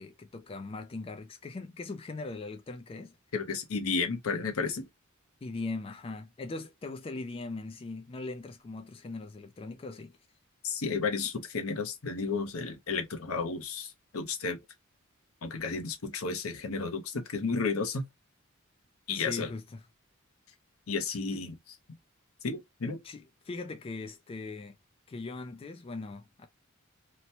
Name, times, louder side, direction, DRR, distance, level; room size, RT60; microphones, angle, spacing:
voice 1, 0.0-3.2 5.4-10.2 19.1-19.8 21.3-21.4 23.0-24.8 25.1-26.5, left 3 dB, 25° left, 0.3 m, -40 dB
voice 2, 3.3-4.9 10.6-14.6 15.4-18.0 19.1-19.5 20.9-21.6 22.4-23.0, left 4 dB, 75° left, 0.7 m, -32 dB
2.9 x 2.1 x 2.7 m
head